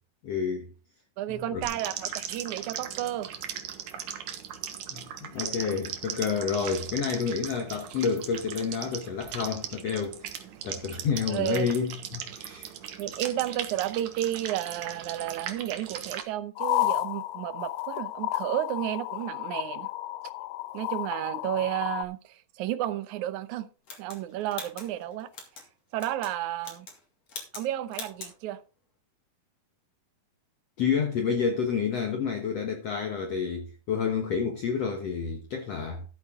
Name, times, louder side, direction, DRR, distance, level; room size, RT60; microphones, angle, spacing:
voice 1, 0.2-0.7 1.3-1.6 4.9-10.3 10.6-12.7 30.8-36.0, left 6 dB, 60° left, 1.7 m, -29 dB
voice 2, 1.2-3.3 6.6-6.7 11.3-11.7 13.0-19.9 20.7-23.7 24.0-25.3 25.9-26.9 27.5-28.6, right 13 dB, 80° right, 1.7 m, -32 dB
sound 1, 1.6-16.2, right 9 dB, 65° right, 2.5 m, -38 dB
sound 2, 16.6-22.0, left 17 dB, 85° left, 2.6 m, -32 dB
sound 3, 23.9-25.7 26.0-26.3 26.6-27.0 27.3-27.7 27.9-28.3, left 4 dB, 45° left, 3.7 m, -42 dB
13.5 x 8.3 x 3.7 m
omnidirectional pair, 4.4 m